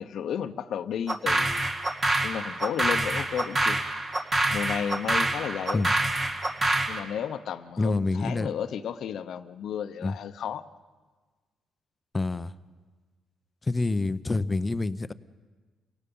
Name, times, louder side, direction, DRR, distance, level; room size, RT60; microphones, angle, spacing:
voice 1, 0.0-1.6 2.2-3.8 4.5-5.8 6.9-10.6, left 8 dB, 70° left, 11 dB, 0.8 m, -33 dB
sound 1, 1.1-7.0, right 2 dB, 30° right, 2.0 m, -26 dB
voice 2, 7.8-8.5 10.0-10.2 12.1-12.5 13.6-15.1, left 3 dB, 20° left, 14 dB, 0.7 m, -27 dB
29.5 x 17.0 x 5.5 m, 1.4 s
cardioid pair, 90°, 0 cm